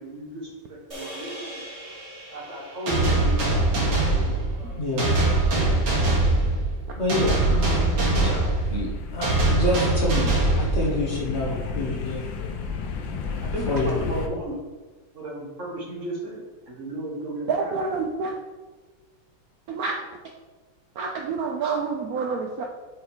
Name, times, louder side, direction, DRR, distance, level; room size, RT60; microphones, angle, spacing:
voice 1, 0.0-1.6 2.3-4.9 13.4-14.6 15.1-17.7, right 1 dB, 40° right, -3 dB, 1.6 m, -35 dB
sound 1, 0.9-5.3, right 1 dB, 20° right, 1.0 m, -42 dB
sound 2, 2.9-11.3, right 2 dB, 85° right, 2.4 m, -22 dB
voice 2, 4.7-5.1 5.5-5.8 7.0-12.5 13.6-14.1, left 1 dB, 40° left, -2 dB, 1.2 m, -28 dB
sound 3, 8.6-14.3, left 5 dB, 75° left, 1.5 m, -33 dB
voice 3, 17.5-18.3 19.7-19.9 21.0-22.6, right 5 dB, 70° right, 2 dB, 0.9 m, -27 dB
5.6 x 5.0 x 4.3 m, 1.3 s
omnidirectional pair, 2.1 m